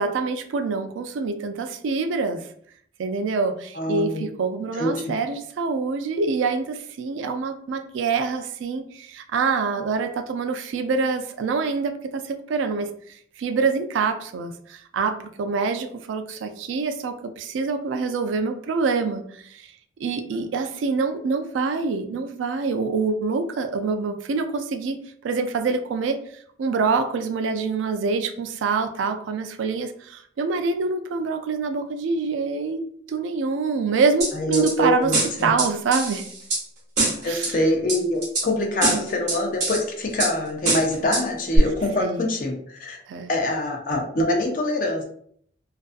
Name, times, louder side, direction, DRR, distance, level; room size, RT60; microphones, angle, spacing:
voice 1, 0.0-2.4 3.0-12.9 13.4-19.7 20.0-26.2 26.6-32.8 33.1-35.1 35.4-36.3 37.3-37.6 38.9-39.0 42.0-42.2 43.1-43.3, right 4 dB, 80° right, 7 dB, 0.3 m, -25 dB
voice 2, 3.7-4.3 4.8-5.1 34.3-35.5 37.2-43.0 43.3-45.0, left 1 dB, 45° left, 2 dB, 0.5 m, -25 dB
sound 1, 34.2-34.7 35.1-36.6 37.0-37.5 37.9-38.5 38.8-39.8 40.2-40.3 40.7-41.2 41.6-41.7, right 2 dB, 40° right, 1.0 m, -23 dB
2.4 x 2.3 x 2.4 m, 0.63 s
head